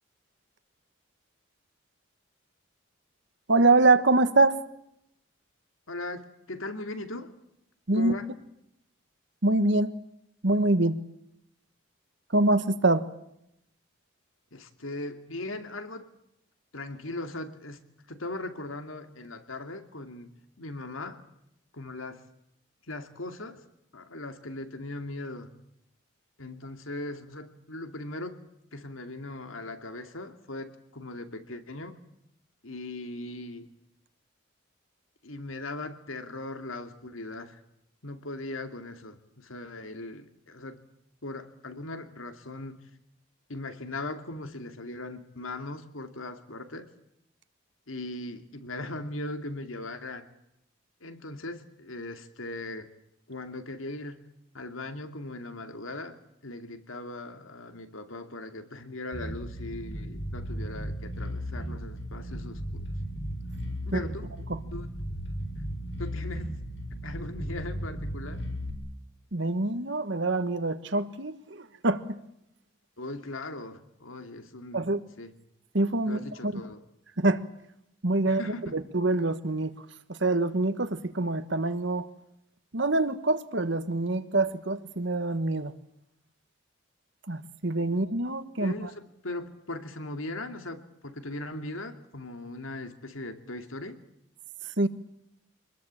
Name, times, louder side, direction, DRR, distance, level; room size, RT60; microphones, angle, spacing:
voice 1, 3.5-4.6 7.9-8.1 9.4-9.9 10.4-11.0 12.3-13.1 63.9-64.0 69.3-72.2 74.7-75.0 75.7-76.5 77.2-77.4 78.0-78.4 78.7-79.7 80.1-82.1 82.7-85.7 87.3-88.9 94.8-94.9, right 2 dB, 60° right, 1.4 m, -25 dB
voice 2, 5.9-7.3 7.9-8.3 14.5-16.1 16.7-20.3 20.6-21.2 21.7-22.2 22.9-23.6 23.9-25.5 26.4-28.4 28.7-32.0 32.6-33.7 35.2-37.6 38.0-40.8 41.2-42.9 43.5-46.9 47.9-50.3 51.0-52.9 53.3-54.3 54.5-62.9 63.9-64.3 64.7-64.9 66.0-66.6 67.0-68.4 73.0-75.4 76.1-76.8 78.3-78.8 87.9-88.0 88.6-94.0, left 2 dB, 90° left, 2.5 m, -39 dB
Bass guitar, 59.1-68.7, equal, 60° left, 5.6 m, -35 dB
25.5 x 21.0 x 8.8 m
head